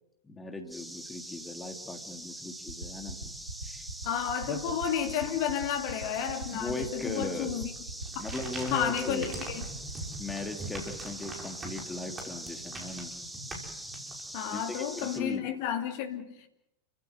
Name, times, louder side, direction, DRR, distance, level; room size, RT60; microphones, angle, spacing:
voice 1, 0.2-3.3 3.6-3.9 4.4-4.6 6.5-7.5 8.2-9.3 10.2-13.1 14.5-15.5, left 2 dB, 10° left, 2.9 m, -38 dB
sound 1, 0.7-15.2, right 1 dB, 5° right, 2.0 m, -43 dB
sound 2, 2.7-10.3, right 2 dB, 75° right, 4.0 m, -39 dB
voice 2, 4.0-7.7 8.7-9.7 14.3-16.5, left 9 dB, 45° left, 2.6 m, -32 dB
sound 3, 8.0-14.5, right 2 dB, 20° right, 5.8 m, -43 dB
29.5 x 16.0 x 8.0 m
figure-of-eight pair, 90°, 0 cm